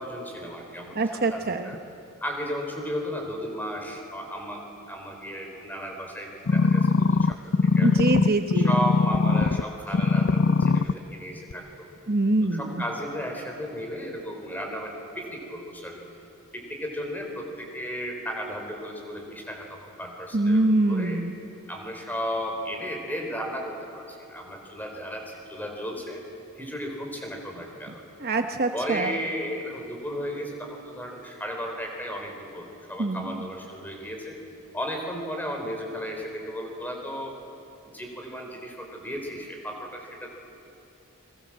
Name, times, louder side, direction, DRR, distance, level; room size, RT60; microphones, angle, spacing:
voice 1, 0.0-1.0 1.3-1.8 2.2-7.4 7.7-8.2 8.6-11.9 12.5-16.0 16.5-21.2 21.7-26.2 26.6-28.0 28.7-34.4 34.7-37.3 37.9-40.3, equal, 10° left, 2 dB, 4.3 m, -34 dB
voice 2, 0.9-1.7 7.8-8.8 12.1-12.8 20.3-21.3 27.9-28.0 28.2-29.2 33.0-33.5, right 2 dB, 45° right, 6 dB, 1.0 m, -24 dB
sound 1, 6.5-9.6 9.9-10.9 11.5-11.6, left 4 dB, 55° left, 0.5 m, -21 dB
30.0 x 23.0 x 7.5 m, 2.9 s
head